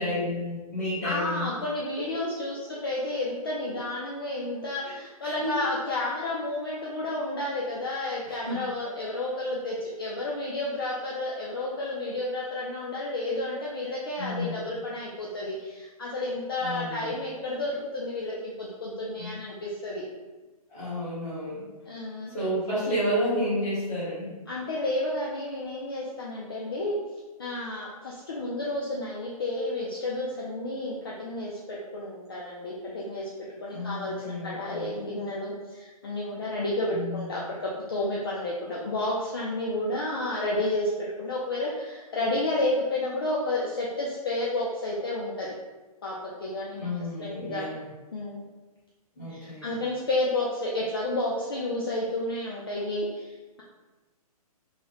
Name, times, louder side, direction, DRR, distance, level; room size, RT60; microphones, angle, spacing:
voice 1, 0.0-1.5 1.9-2.0 5.2-5.6 8.2-8.6 14.2-14.6 16.6-17.1 19.2-19.3 20.7-21.6 22.3-24.3 33.7-34.9 36.9-37.3 46.8-47.8 49.1-49.7, equal, 10° left, -12 dB, 0.9 m, -31 dB
voice 2, 1.0-20.1 21.9-22.3 24.5-27.0 27.4-33.3 33.6-40.9 41.2-45.5 46.0-46.9 47.2-47.7 48.1-48.4 49.3-53.6, left 2 dB, 40° left, -5 dB, 0.4 m, -31 dB
3.1 x 2.1 x 3.8 m, 1.2 s
hypercardioid pair, 180°, 19 cm